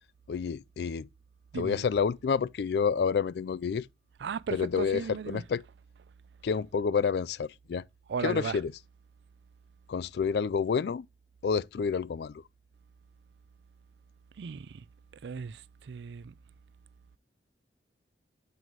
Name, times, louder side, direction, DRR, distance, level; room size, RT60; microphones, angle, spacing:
voice 1, 0.3-1.1 1.5-3.9 4.5-5.6 6.4-7.8 8.2-8.7 9.9-11.1 11.4-12.4, left 6 dB, 60° left, 0.3 m, -29 dB
voice 2, 1.5-1.9 4.2-5.5 8.1-8.6 14.4-14.9 15.2-16.3, right 6 dB, 70° right, 0.4 m, -36 dB
7.8 x 4.6 x 3.9 m
head